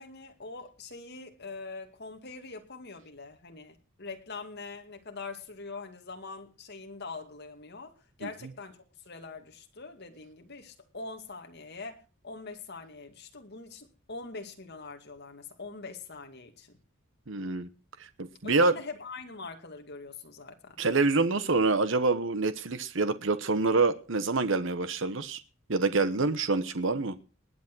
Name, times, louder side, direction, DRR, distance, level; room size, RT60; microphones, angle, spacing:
voice 1, 0.0-7.9 8.2-16.8 18.4-20.8, left 3 dB, 50° left, 4 dB, 2.3 m, -43 dB
voice 2, 17.3-17.7 18.0-18.7 20.8-25.4 25.7-27.2, right 3 dB, 60° right, 13 dB, 1.0 m, -26 dB
20.0 x 8.3 x 6.2 m, 0.36 s
head